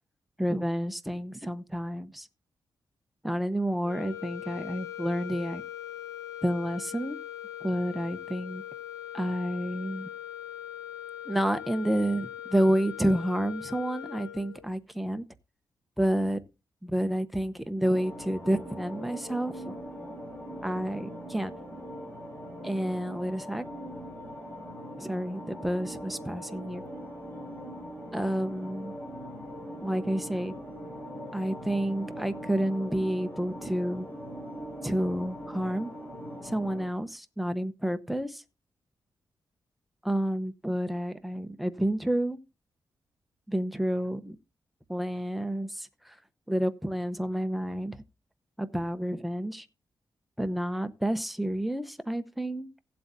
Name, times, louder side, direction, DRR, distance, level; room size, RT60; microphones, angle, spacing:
voice 1, 0.4-2.3 3.2-5.6 6.4-7.2 7.6-8.6 9.1-10.1 11.3-15.2 16.0-16.4 16.8-19.7 20.6-21.5 22.6-23.6 25.0-26.8 28.1-28.9 29.8-30.5 31.3-34.1 34.8-35.9 36.4-38.4 40.0-42.4 43.5-44.4 44.9-46.2 46.5-48.0 48.6-49.7 50.4-52.7, equal, ahead, 0.8 m, -29 dB
sound 1, 3.8-14.7, left 11 dB, 45° left, 2.4 m, -41 dB
sound 2, 17.8-36.9, equal, 30° left, 5.8 m, -41 dB
16.5 x 7.8 x 2.7 m
wide cardioid pair, 125°, 8 cm